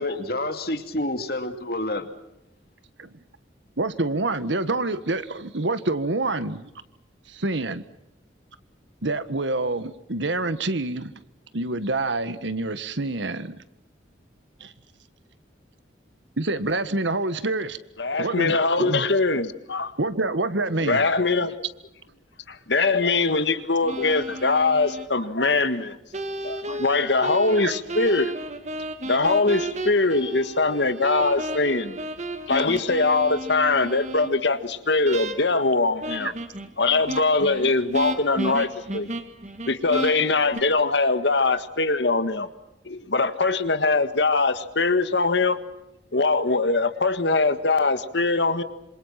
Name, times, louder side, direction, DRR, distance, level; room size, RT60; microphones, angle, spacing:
voice 1, 0.0-2.1, left 1 dB, 55° left, 2.5 m, -28 dB
voice 2, 3.8-6.7 7.3-7.8 9.0-11.1 11.5-13.6 14.6-14.7 16.4-17.8 18.2-19.1 20.0-21.1 25.2-25.3 27.5-27.7, right 2 dB, 75° right, 1.6 m, -27 dB
voice 3, 18.0-19.9 20.9-21.6 22.5-26.0 26.4-28.3 29.1-32.0 32.5-36.3 36.8-39.1 39.6-42.5 42.9-45.6 46.1-48.6, left 3 dB, 70° left, 1.8 m, -22 dB
sound 1, 23.8-25.1 26.1-34.3 35.0-35.7 36.0-40.6, right 1 dB, 35° right, 2.1 m, -33 dB
27.0 x 27.0 x 5.9 m
head